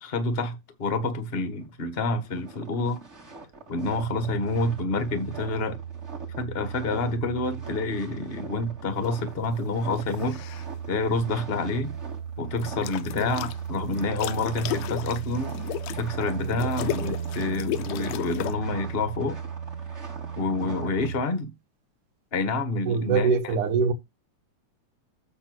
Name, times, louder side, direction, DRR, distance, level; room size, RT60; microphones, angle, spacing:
voice 1, 0.0-3.0 3.7-5.8 6.4-10.4 10.9-11.9 12.4-15.5 16.0-19.4 20.4-21.5 22.3-23.6, left 2 dB, 35° left, 0.9 m, -28 dB
sound 1, 1.5-1.7 2.1-21.1, right 3 dB, 25° right, 2.1 m, -44 dB
sound 2, 3.8-21.2, right 7 dB, 70° right, 0.7 m, -36 dB
sound 3, 10.0-10.7 12.6-13.6 13.9-18.6, left 14 dB, 75° left, 1.6 m, -34 dB
voice 2, 22.9-23.9, right 5 dB, 85° right, 2.7 m, -23 dB
8.5 x 4.0 x 6.0 m
omnidirectional pair, 3.5 m